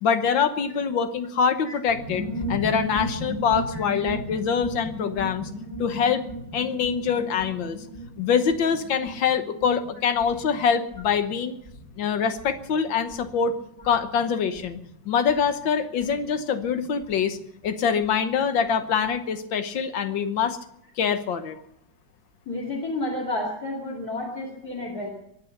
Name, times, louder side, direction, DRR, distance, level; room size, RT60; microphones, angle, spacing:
voice 1, 0.0-2.2 2.5-5.5 5.8-6.2 6.5-7.8 8.2-11.6 12.0-13.5 13.8-14.8 15.1-17.4 17.6-20.6 21.0-21.6, left 6 dB, 85° left, 9 dB, 1.9 m, -24 dB
sound 1, 1.9-18.2 18.4-18.5 18.7-19.1, equal, 35° left, 4.7 m, -37 dB
voice 2, 22.5-25.1, left 2 dB, 55° left, -3 dB, 3.2 m, -31 dB
22.5 x 8.9 x 6.6 m, 0.75 s
omnidirectional pair, 2.0 m